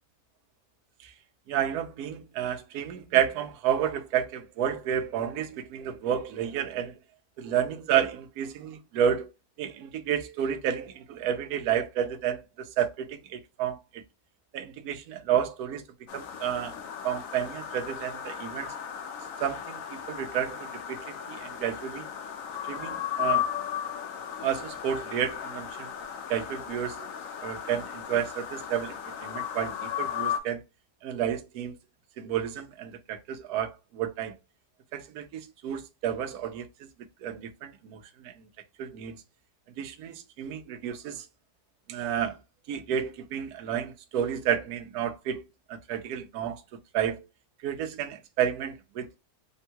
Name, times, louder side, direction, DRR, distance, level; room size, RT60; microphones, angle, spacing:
voice 1, 1.5-7.0 7.4-9.3 9.6-14.0 14.5-15.8 16.1-16.8 17.0-18.7 19.4-22.1 22.7-23.5 24.4-25.9 26.3-27.1 27.4-30.6 31.0-31.7 32.2-34.3 34.9-36.9 37.2-38.3 38.8-39.2 39.8-41.2 41.9-42.4 42.7-45.4 45.7-46.6 46.9-47.3 47.6-49.2, right 9 dB, 70° right, 1.1 m, -31 dB
sound 1, 16.1-30.4, left 9 dB, 65° left, 0.9 m, -35 dB
3.6 x 2.2 x 2.7 m
omnidirectional pair, 1.8 m